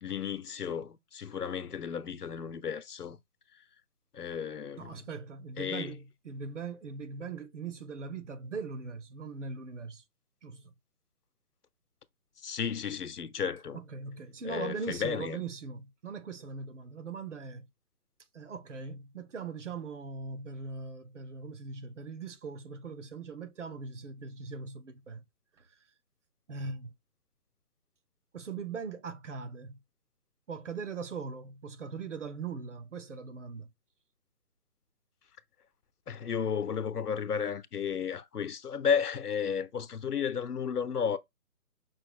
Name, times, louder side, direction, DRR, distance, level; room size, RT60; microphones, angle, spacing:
voice 1, 0.0-3.2 4.1-5.0 5.6-5.9 12.4-13.8 14.4-15.4 36.1-41.2, left 7 dB, 80° left, 0.8 m, -33 dB
voice 2, 4.8-10.0 10.4-10.7 13.7-17.7 18.3-25.2 25.6-25.7 26.5-26.9 28.3-29.8 30.5-33.7, right 5 dB, 50° right, 0.8 m, -40 dB
5.5 x 2.5 x 3.6 m
figure-of-eight pair, 155°, 46 cm